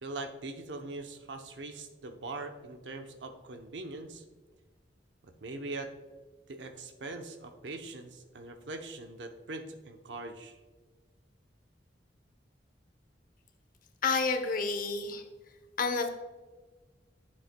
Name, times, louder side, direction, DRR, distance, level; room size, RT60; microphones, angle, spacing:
voice 1, 0.0-4.2 5.4-5.9 6.5-10.6, right 2 dB, 90° right, 6 dB, 0.8 m, -42 dB
voice 2, 14.0-15.2 15.8-16.1, left 4 dB, 50° left, 7 dB, 0.8 m, -29 dB
10.5 x 7.3 x 2.2 m, 1.3 s
head